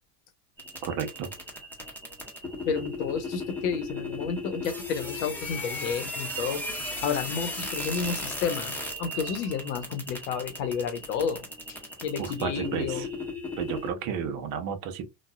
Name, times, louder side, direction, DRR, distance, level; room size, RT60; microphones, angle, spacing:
sound 1, 0.6-13.9, left 2 dB, 5° left, 0.9 m, -36 dB
voice 1, 0.8-1.3 12.2-13.1 13.6-15.0, right 7 dB, 60° right, 0.9 m, -32 dB
voice 2, 2.7-6.6 7.0-11.5 12.0-13.1, left 6 dB, 80° left, 0.9 m, -31 dB
3.1 x 2.3 x 2.3 m
supercardioid pair, 115°, 41 cm